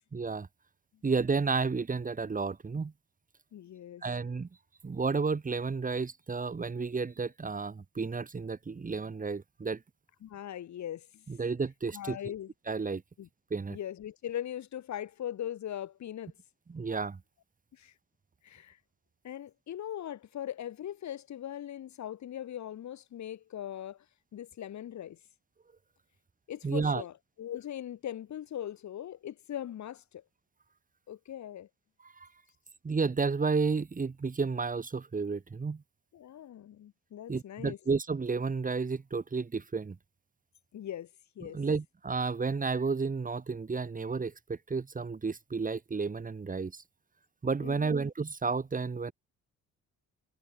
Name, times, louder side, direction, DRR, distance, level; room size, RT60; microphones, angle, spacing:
voice 1, 0.1-0.5 1.0-2.9 4.0-4.5 4.8-9.8 11.3-12.2 12.7-13.0 13.5-13.8 16.7-17.2 26.6-27.0 32.0-32.3 32.8-35.8 37.3-40.0 41.5-46.8 47.4-49.1, right 4 dB, 25° right, 1.8 m, -32 dB
voice 2, 3.5-4.1 10.2-11.2 11.9-12.5 13.2-13.3 13.7-16.3 17.7-17.9 18.4-18.8 19.2-24.0 24.3-25.2 26.5-30.2 31.1-31.7 36.1-37.8 40.7-41.1 41.4-41.6 47.6-48.0, left 11 dB, 65° left, 3.7 m, -40 dB
cardioid pair, 90°, 30 cm